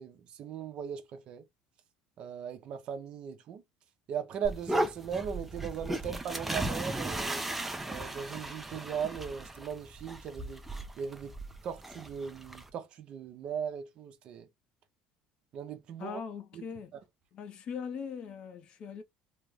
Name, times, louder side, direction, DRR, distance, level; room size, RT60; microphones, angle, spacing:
voice 1, 0.0-1.4 2.2-3.6 4.1-7.5 7.9-10.6 11.0-11.3 11.6-14.5 15.5-16.2 16.5-16.6, right 7 dB, 45° right, 0.6 m, -38 dB
sound 1, 4.4-12.7, right 1 dB, 5° right, 0.4 m, -36 dB
voice 2, 16.0-17.0 17.3-19.0, left 6 dB, 45° left, 0.6 m, -40 dB
3.1 x 2.0 x 3.5 m
cardioid pair, 145°, 2 cm